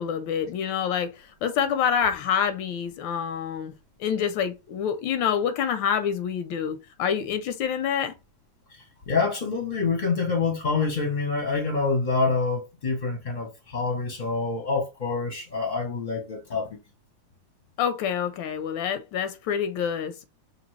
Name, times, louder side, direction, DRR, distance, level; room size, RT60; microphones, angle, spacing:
voice 1, 0.0-3.7 4.0-8.1 17.8-20.2, left 8 dB, 85° left, 1.3 m, -27 dB
voice 2, 8.7-16.8, left 4 dB, 40° left, 0.7 m, -27 dB
5.2 x 2.8 x 3.1 m
omnidirectional pair, 2.0 m